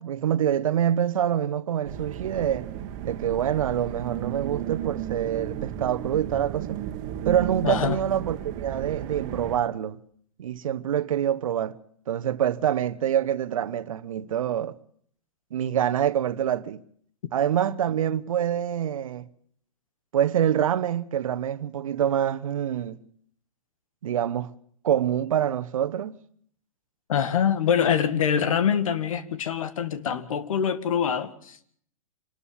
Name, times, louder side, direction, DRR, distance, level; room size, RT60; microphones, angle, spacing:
voice 1, 0.0-2.7 3.0-6.8 7.2-10.0 10.4-11.8 12.1-14.7 15.5-16.8 17.3-19.3 20.1-23.0 24.0-24.5 24.8-26.2, right 10 dB, 70° right, 1.1 m, -26 dB
sound 1, 1.8-9.6, right 10 dB, 45° right, 1.8 m, -34 dB
voice 2, 7.6-8.0 27.1-31.7, left 8 dB, 70° left, 1.9 m, -24 dB
26.5 x 12.5 x 8.6 m
hypercardioid pair, 120°, 18 cm